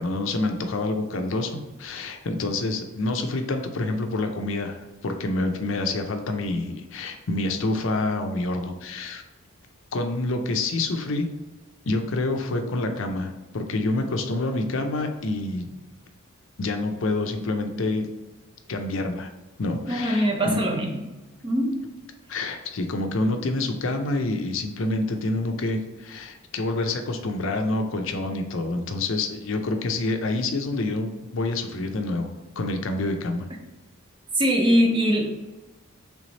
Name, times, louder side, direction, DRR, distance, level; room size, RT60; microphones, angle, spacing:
voice 1, 0.0-4.8 5.0-9.2 9.9-11.3 11.9-15.7 16.6-18.1 18.7-19.3 19.6-20.6 22.3-33.5, left 2 dB, 65° left, 5 dB, 0.5 m, -27 dB
voice 2, 19.9-20.9 21.4-21.8 34.3-35.3, equal, 20° right, 2 dB, 0.6 m, -21 dB
3.4 x 3.2 x 4.0 m, 1.1 s
head